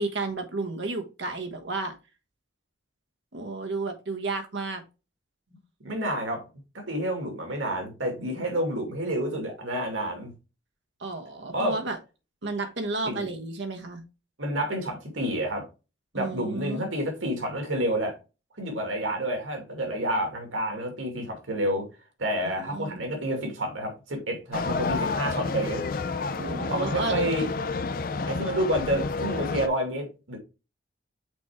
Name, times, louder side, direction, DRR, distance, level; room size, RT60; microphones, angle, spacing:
voice 1, 0.0-1.9 3.3-4.8 11.0-12.0 12.4-14.0 16.1-16.9 22.4-23.0 26.4-27.2, right 3 dB, 70° right, 1.3 m, -32 dB
voice 2, 5.8-6.4 6.7-10.3 11.5-11.8 13.0-13.3 14.4-15.7 16.1-18.1 18.6-21.9 22.2-25.8 26.7-27.5 28.3-30.4, right 1 dB, 90° right, 2.4 m, -29 dB
sound 1, 24.5-29.7, left 4 dB, 45° left, 0.4 m, -30 dB
6.0 x 4.5 x 3.6 m
head